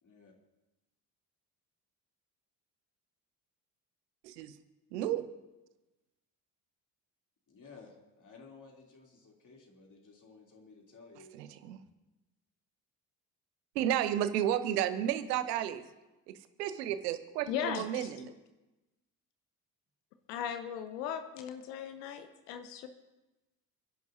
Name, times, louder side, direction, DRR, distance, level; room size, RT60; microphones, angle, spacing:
voice 1, 0.0-0.3 7.5-11.4, left 4 dB, 40° left, -1 dB, 3.2 m, -55 dB
voice 2, 4.2-4.5 4.9-5.2 11.3-11.8 13.7-15.8 16.3-18.3, right 11 dB, 80° right, 12 dB, 1.0 m, -32 dB
voice 3, 17.5-18.1 20.3-22.9, left 8 dB, 75° left, 9 dB, 0.9 m, -37 dB
28.5 x 11.0 x 2.8 m, 1.0 s
hypercardioid pair, 50°, 48 cm